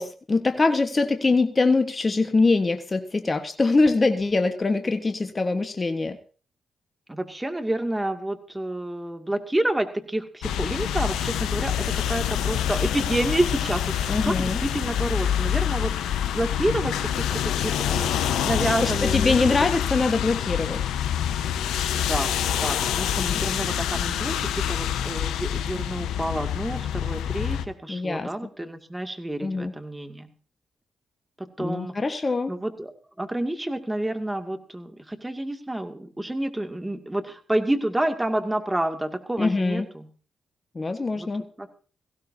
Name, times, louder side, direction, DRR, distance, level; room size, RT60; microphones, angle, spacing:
voice 1, 0.0-6.2 14.1-14.6 18.8-20.8 23.2-23.4 27.9-28.3 29.4-29.7 31.6-32.5 39.4-39.9 40.7-41.4, left 3 dB, 35° left, 8 dB, 1.3 m, -23 dB
voice 2, 7.1-18.1 18.4-19.7 21.9-30.3 31.4-32.0 32.5-32.9 33.2-40.1 41.2-41.3 41.6-41.7, right 1 dB, 15° right, 6 dB, 2.3 m, -29 dB
sound 1, 10.4-27.6, left 10 dB, 80° left, 1.0 m, -26 dB
18.0 x 16.0 x 2.8 m, 0.39 s
supercardioid pair, 45°, 0 cm